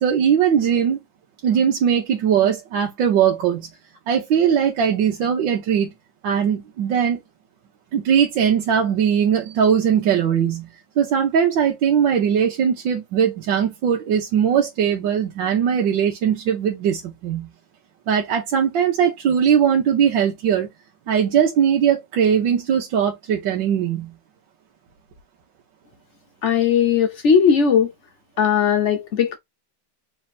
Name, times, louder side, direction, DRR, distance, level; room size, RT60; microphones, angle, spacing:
voice 1, 0.0-1.0 1.4-3.7 4.1-5.9 6.2-7.2 7.9-10.7 11.0-17.5 18.1-20.7 21.1-24.1, right 8 dB, 85° right, 1.6 m, -20 dB
voice 2, 26.4-27.9 28.4-29.4, left 7 dB, 60° left, 0.7 m, -18 dB
3.5 x 3.3 x 4.1 m
omnidirectional pair, 2.0 m